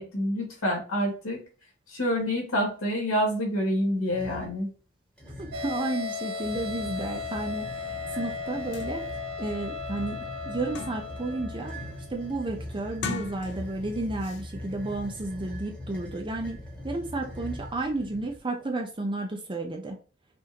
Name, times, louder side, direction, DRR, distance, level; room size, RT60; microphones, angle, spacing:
voice 1, 0.0-1.4 1.9-4.7, equal, 80° left, -2 dB, 2.3 m, -27 dB
sound 1, 4.1-4.6 5.2-5.8 6.4-18.4, left 1 dB, 5° left, 1.2 m, -41 dB
voice 2, 5.4-9.0 9.4-10.2 10.5-11.7 12.1-16.6 16.8-20.0, right 2 dB, 25° right, 2 dB, 0.6 m, -32 dB
sound 2, 5.5-12.4, left 4 dB, 75° right, 1.9 m, -36 dB
sound 3, 8.4-8.5 8.7-8.9 9.4-9.5 10.0-11.3 11.7-12.0 12.9-13.9 14.2-14.4, left 4 dB, 55° left, 0.5 m, -38 dB
5.7 x 2.6 x 2.9 m, 0.37 s
head